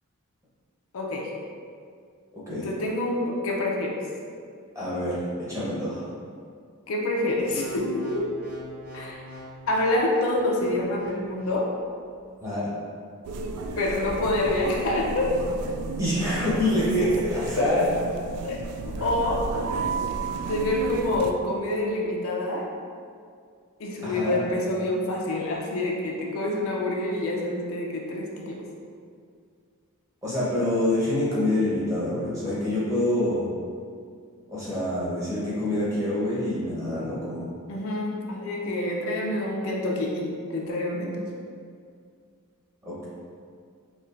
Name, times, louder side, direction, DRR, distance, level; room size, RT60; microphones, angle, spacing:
voice 1, 0.9-1.3 2.6-4.0 6.9-8.3 8.9-9.2 9.7-11.7 13.8-15.3 17.2-17.8 18.4-18.6 18.8-19.5 20.5-22.7 23.8-28.6 37.7-41.3, left 1 dB, 65° left, -2 dB, 0.5 m, -27 dB
voice 2, 4.7-6.0 12.4-12.7 16.0-17.8 24.0-24.4 30.2-33.5 34.5-37.5 42.8-43.0, left 1 dB, 15° right, -9 dB, 1.0 m, -26 dB
sound 1, 7.3-11.6 12.2-12.4, left 2 dB, 60° right, 1.0 m, -43 dB
sound 2, 13.2-21.3, right 4 dB, 90° right, 0.3 m, -32 dB
4.3 x 2.7 x 2.5 m, 2.2 s
head